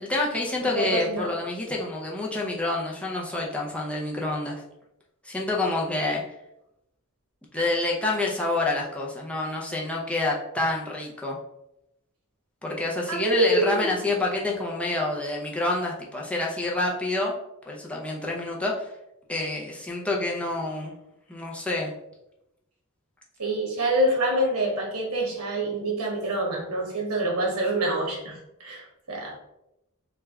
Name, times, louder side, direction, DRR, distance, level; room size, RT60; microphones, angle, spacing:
voice 1, 0.0-4.6 5.2-6.3 7.5-11.4 12.6-17.3 17.7-18.9 19.3-21.0 21.3-21.9, left 2 dB, 5° left, -3 dB, 0.5 m, -28 dB
voice 2, 0.7-1.3 13.1-13.9 23.4-29.4, right 1 dB, 85° right, 0 dB, 1.0 m, -26 dB
3.2 x 2.4 x 3.4 m, 0.86 s
head